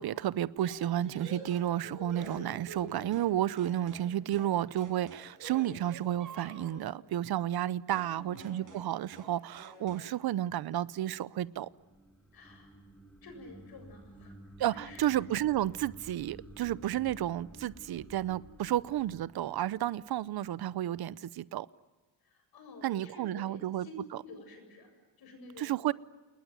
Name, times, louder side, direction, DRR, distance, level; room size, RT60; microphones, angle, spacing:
voice 1, 0.0-11.7 14.6-21.7 22.8-23.9 25.6-25.9, right 12 dB, 65° right, 0.8 m, -32 dB
sound 1, 0.6-3.3 3.6-4.1 4.3-4.5 4.8-6.9 7.9-8.1 8.4-8.9 9.1-9.3 9.6-10.1, right 3 dB, 50° right, 6.2 m, -47 dB
voice 2, 8.0-8.7 12.3-12.7 13.2-14.4 14.6-15.1 22.2-24.0 24.2-25.9, left 2 dB, 65° left, 7.7 m, -51 dB
sound 2, 11.1-20.4, right 1 dB, 5° left, 4.8 m, -53 dB
29.0 x 20.0 x 9.4 m
cardioid pair, 150°, 40 cm